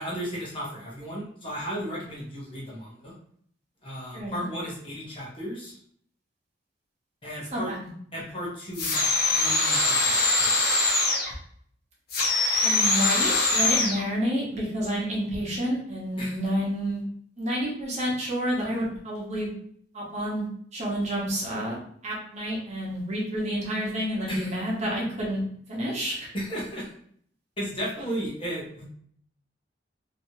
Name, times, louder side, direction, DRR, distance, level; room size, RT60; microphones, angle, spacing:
voice 1, 0.0-3.1 3.8-5.8 7.2-7.7 8.1-10.5 16.2-16.4 24.3-24.6 26.3-26.9 27.6-28.9, equal, 30° left, -5 dB, 1.0 m, -35 dB
voice 2, 4.1-4.4 7.5-7.8 12.6-17.0 17.4-19.5 19.9-20.5 20.7-25.4 25.7-26.3, equal, 40° right, -4 dB, 1.0 m, -29 dB
sound 1, 8.7-11.3 12.1-14.0, left 2 dB, 55° left, 0.8 m, -23 dB
3.0 x 2.8 x 2.7 m, 0.62 s
head